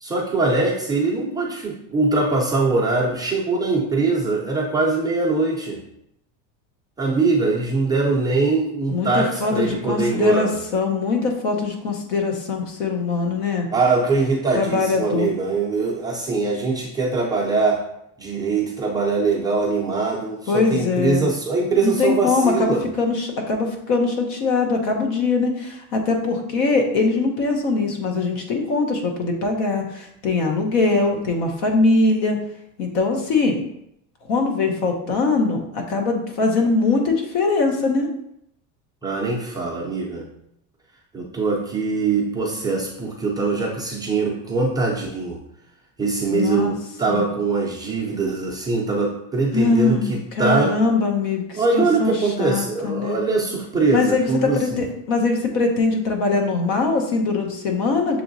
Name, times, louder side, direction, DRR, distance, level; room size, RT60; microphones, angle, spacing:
voice 1, 0.0-5.8 7.0-10.5 13.7-17.8 18.2-22.9 39.0-40.3 41.1-45.4 46.0-50.8 51.5-54.6, right 3 dB, 10° right, -4 dB, 0.3 m, -22 dB
voice 2, 8.9-13.7 14.6-15.3 20.5-21.3 21.8-32.4 32.8-33.6 34.3-38.1 46.3-46.7 47.1-47.2 49.5-52.1 52.4-53.2 53.9-58.2, left 3 dB, 85° left, 3 dB, 1.1 m, -22 dB
6.7 x 3.0 x 2.6 m, 0.77 s
cardioid pair, 160°, 39 cm